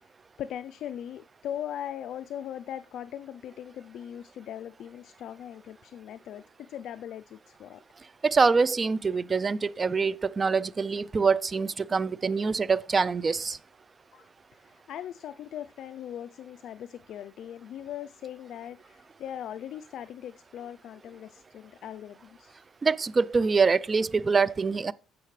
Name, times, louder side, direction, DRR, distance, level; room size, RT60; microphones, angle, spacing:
voice 1, 0.4-7.8 14.1-22.7, left 10 dB, 65° left, 0.4 m, -40 dB
voice 2, 8.2-13.6 22.8-24.9, right 4 dB, 25° right, 0.4 m, -25 dB
15.5 x 5.8 x 3.1 m
cardioid pair, 120°, 0 cm